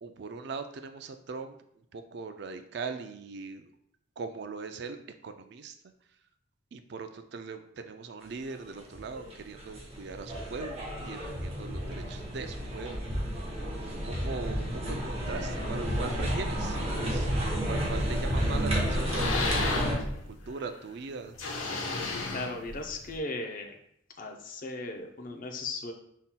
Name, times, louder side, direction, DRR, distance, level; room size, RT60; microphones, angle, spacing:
voice 1, 0.0-1.5 1.9-3.6 4.2-5.0 5.2-5.7 6.7-13.1 13.9-17.3 17.7-19.9 20.3-21.3, right 4 dB, 55° right, 8 dB, 0.4 m, -40 dB
sound 1, 8.9-20.0, equal, 30° right, 0.9 m, -31 dB
sound 2, 17.8-18.4 18.8-20.7 21.3-23.2, left 3 dB, 90° left, 0.9 m, -33 dB
voice 2, 22.3-23.7 24.2-25.9, left 2 dB, 45° left, 4 dB, 0.6 m, -37 dB
5.7 x 4.0 x 2.2 m, 0.71 s
head